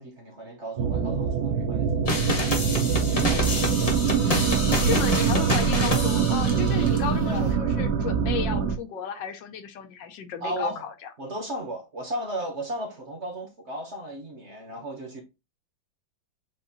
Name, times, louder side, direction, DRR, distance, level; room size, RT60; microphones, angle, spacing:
voice 1, 0.0-3.6 7.2-7.5 10.4-10.8 11.2-15.2, right 1 dB, 45° right, 1.1 m, -36 dB
sound 1, 0.8-8.8, right 6 dB, 65° right, 1.2 m, -24 dB
sound 2, 2.1-7.0, left 2 dB, 30° left, 0.7 m, -29 dB
voice 2, 4.8-11.1, left 8 dB, 75° left, 1.4 m, -33 dB
7.5 x 2.6 x 2.7 m
omnidirectional pair, 2.1 m